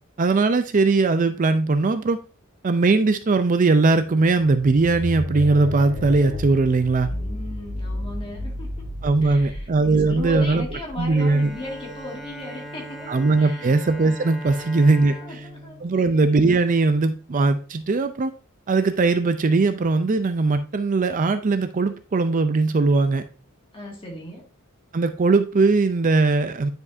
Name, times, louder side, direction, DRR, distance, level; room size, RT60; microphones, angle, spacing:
voice 1, 0.2-2.2 2.6-7.1 9.0-10.7 11.0-11.5 13.1-15.1 15.8-18.3 18.7-23.2 24.9-26.7, right 3 dB, 40° right, 10 dB, 0.5 m, -20 dB
sound 1, 4.3-12.3, left 1 dB, 50° left, 3.5 m, -33 dB
voice 2, 7.0-8.9 9.2-13.8 14.4-16.4 23.7-24.5, left 1 dB, 25° left, -1 dB, 2.0 m, -37 dB
Bowed string instrument, 11.2-17.0, equal, ahead, 1.9 m, -40 dB
9.6 x 5.2 x 2.6 m, 0.35 s
head